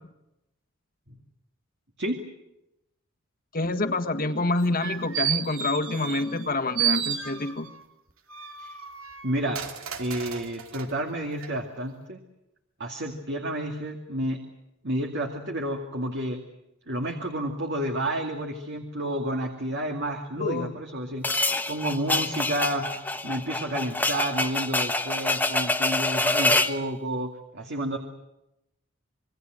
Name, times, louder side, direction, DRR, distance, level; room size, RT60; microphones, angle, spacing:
voice 1, 3.5-7.7 20.4-20.7, left 2 dB, 45° left, 8 dB, 1.7 m, -27 dB
sound 1, 4.6-6.5 6.8-7.8 8.3-10.9 11.4-11.5, right 10 dB, 85° right, 2.5 m, -32 dB
voice 2, 9.2-9.6 10.0-12.2 12.8-14.4 14.8-16.4 16.9-21.3 21.7-22.9 23.2-28.0, right 1 dB, 55° right, 3 dB, 2.3 m, -30 dB
sound 2, 21.2-26.8, left 2 dB, 10° left, 1.2 m, -26 dB
27.0 x 22.5 x 7.8 m, 0.89 s
head